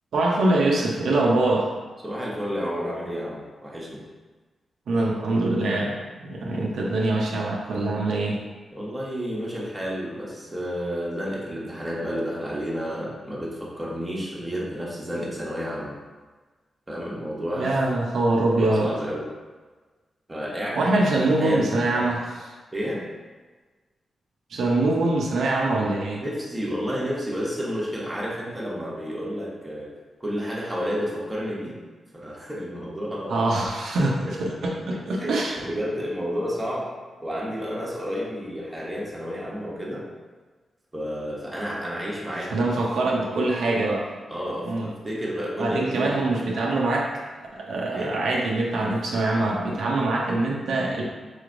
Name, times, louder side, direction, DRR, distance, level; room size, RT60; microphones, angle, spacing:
voice 1, 0.1-1.7 4.9-6.0 6.2-8.4 17.6-18.9 20.8-22.4 24.5-26.2 33.3-35.6 42.5-44.0 44.7-44.9 45.6-47.2 47.5-51.0, right 2 dB, 85° right, -2 dB, 0.6 m, -23 dB
voice 2, 2.0-4.0 6.7-7.1 8.7-16.0 16.9-17.8 18.5-19.3 20.3-20.9 21.4-22.1 22.7-23.0 26.1-29.9 30.2-31.8 32.1-33.4 34.3-34.4 34.9-36.9 37.2-40.0 40.9-42.7 43.0-43.1 44.3-46.5 47.9-48.2, equal, 10° right, -5 dB, 0.9 m, -31 dB
4.1 x 3.1 x 2.5 m, 1.3 s
wide cardioid pair, 105°, 0 cm